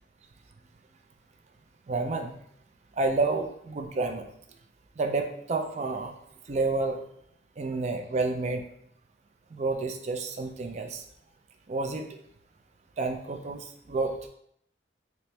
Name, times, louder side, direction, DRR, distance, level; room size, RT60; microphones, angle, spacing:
voice 1, 1.9-2.3 3.0-4.3 5.0-6.1 6.5-7.0 7.6-8.6 9.5-11.0 11.7-12.1 13.0-14.1, right 3 dB, 35° right, 4 dB, 0.3 m, -29 dB
4.3 x 2.1 x 3.2 m, 0.71 s
head